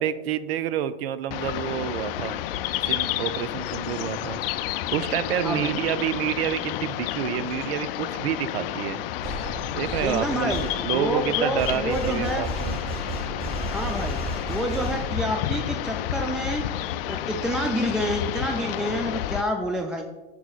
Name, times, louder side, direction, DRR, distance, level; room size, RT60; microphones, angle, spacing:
voice 1, 0.0-2.4 2.8-4.4 4.9-9.0 9.7-12.8, right 10 dB, 70° right, 14 dB, 0.5 m, -28 dB
sound 1, 1.3-19.4, left 12 dB, 65° left, 0.5 m, -30 dB
voice 2, 5.4-5.8 10.0-10.6 10.9-12.5 13.7-14.2 14.5-16.7 17.1-20.0, equal, ahead, 3 dB, 0.3 m, -28 dB
sound 2, 9.2-15.6, right 1 dB, 25° right, 2.3 m, -34 dB
9.2 x 6.2 x 2.4 m, 1.2 s
hypercardioid pair, 110°, 31 cm